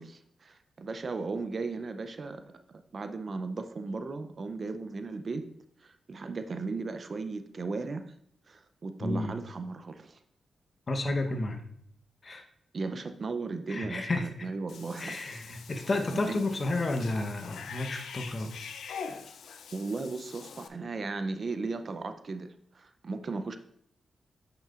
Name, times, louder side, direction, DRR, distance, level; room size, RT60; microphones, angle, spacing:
voice 1, 0.0-2.6 2.9-5.5 5.8-8.1 8.5-10.2 12.7-15.4 16.3-16.4 19.7-22.5 22.7-23.6, right 3 dB, 50° right, 9 dB, 0.5 m, -36 dB
voice 2, 9.0-9.4 10.9-11.6 12.2-12.4 13.7-14.5 15.0-18.5, left 2 dB, 45° left, 6 dB, 0.9 m, -31 dB
Cat / Bathtub (filling or washing), 14.7-20.7, left 6 dB, 90° left, 0.4 m, -44 dB
8.7 x 6.0 x 2.5 m, 0.67 s
cardioid pair, 70°, 0 cm